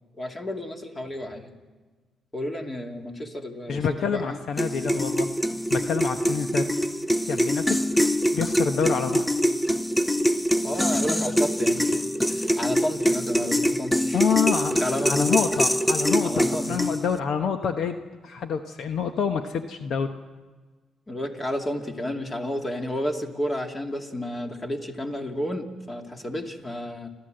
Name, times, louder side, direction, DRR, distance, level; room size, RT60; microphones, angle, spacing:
voice 1, 0.2-1.5 2.3-4.4 10.6-14.2 14.7-15.3 16.2-16.8 21.1-27.1, left 1 dB, 25° left, 3 dB, 2.6 m, -31 dB
voice 2, 3.7-5.3 5.7-6.7 7.3-7.8 8.3-9.3 14.1-20.1, left 6 dB, 65° left, 7 dB, 1.0 m, -27 dB
sound 1, 4.6-17.2, equal, 5° left, 0.7 m, -24 dB
29.5 x 13.0 x 7.8 m, 1.4 s
cardioid pair, 90°, 0 cm